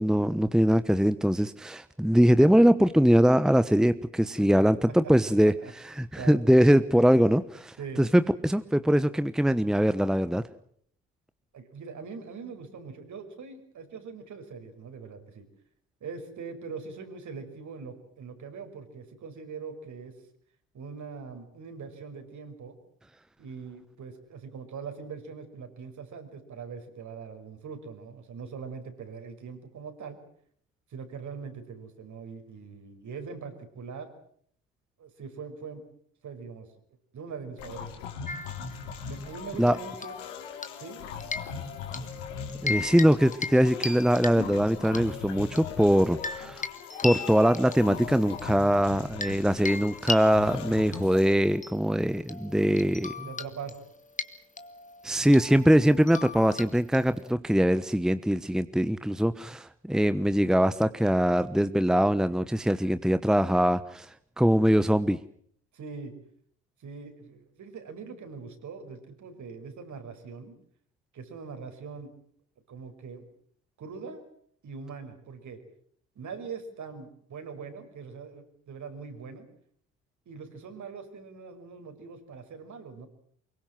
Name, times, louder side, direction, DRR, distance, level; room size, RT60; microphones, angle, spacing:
voice 1, 0.0-5.5 5.8-10.4 39.6-39.8 42.6-46.6 47.0-53.3 55.0-64.1 64.4-65.2, equal, ahead, 13 dB, 1.1 m, -22 dB
voice 2, 5.2-5.7 6.1-6.4 7.8-8.0 11.5-15.4 16.0-20.1 20.7-22.8 23.4-30.2 30.9-34.1 35.0-35.8 36.2-36.7 37.1-37.9 39.1-40.2 40.8-41.0 53.2-53.8 65.7-66.1 66.8-70.6 71.1-72.1 72.7-73.2 73.8-74.2 74.6-75.6 76.2-79.5 80.3-83.1, right 5 dB, 55° right, 7 dB, 5.6 m, -42 dB
sound 1, 37.6-51.3, left 7 dB, 80° left, 4.0 m, -40 dB
sound 2, 38.3-39.3 40.0-40.9 41.2-42.1 42.5-43.1 43.3-43.6 43.8-45.0 45.6-49.4 49.7-57.3, left 3 dB, 20° left, 2.3 m, -38 dB
24.0 x 22.5 x 7.5 m, 0.63 s
hypercardioid pair, 55°, 36 cm